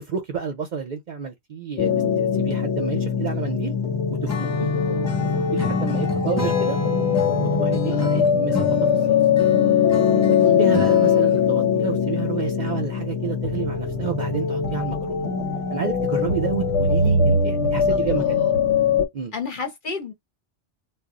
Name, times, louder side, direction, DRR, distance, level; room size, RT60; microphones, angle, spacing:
voice 1, 0.0-1.9 2.2-3.7 4.1-4.7 5.3-6.8 7.4-8.0 8.3-9.2 10.3-15.2 15.7-18.4 19.1-19.3, right 6 dB, 50° right, 0.6 m, -30 dB
sound 1, 1.8-19.1, left 6 dB, 85° left, 1.0 m, -21 dB
Acoustic guitar / Strum, 4.3-11.5, left 4 dB, 20° left, 0.4 m, -31 dB
voice 2, 4.5-5.2 7.9-8.2 10.4-10.9 17.9-18.6 19.3-20.1, left 6 dB, 50° left, 0.8 m, -32 dB
2.2 x 2.0 x 3.6 m
omnidirectional pair, 1.2 m